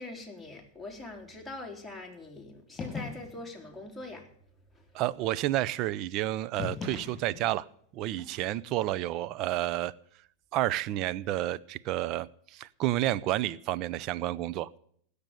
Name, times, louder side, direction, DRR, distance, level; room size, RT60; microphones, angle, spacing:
voice 1, 0.0-4.3 4.7-4.8 8.2-8.3, left 2 dB, ahead, -1 dB, 3.5 m, -43 dB
sound 1, 2.8-3.5 6.6-7.6, left 5 dB, 25° left, 6.1 m, -39 dB
voice 2, 4.9-7.7 7.9-9.9 10.5-14.7, right 14 dB, 50° right, 18 dB, 0.6 m, -30 dB
16.0 x 6.7 x 9.6 m, 0.63 s
hypercardioid pair, 110°, 0 cm